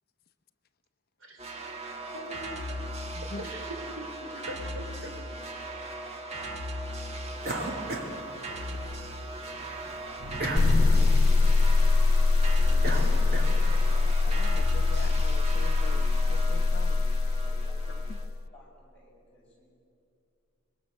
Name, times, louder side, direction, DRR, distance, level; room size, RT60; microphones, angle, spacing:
voice 1, 1.2-1.6 2.1-3.1 3.4-5.1 5.6-5.7 13.0-13.2, right 1 dB, 75° right, 5 dB, 3.3 m, -42 dB
sound 1, 1.4-18.2, right 1 dB, 30° right, 1.5 m, -38 dB
sound 2, 7.4-9.0 9.4-13.9, right 1 dB, 45° right, 2.4 m, -35 dB
voice 2, 10.3-11.1 12.7-13.3 13.9-17.0, left 2 dB, 45° left, 10 dB, 0.7 m, -45 dB
sound 3, 10.6-18.4, left 3 dB, 80° left, 0.5 m, -23 dB
voice 3, 17.4-18.0 18.5-19.8, equal, 5° left, -6 dB, 7.0 m, -56 dB
25.5 x 22.5 x 6.5 m, 2.6 s
head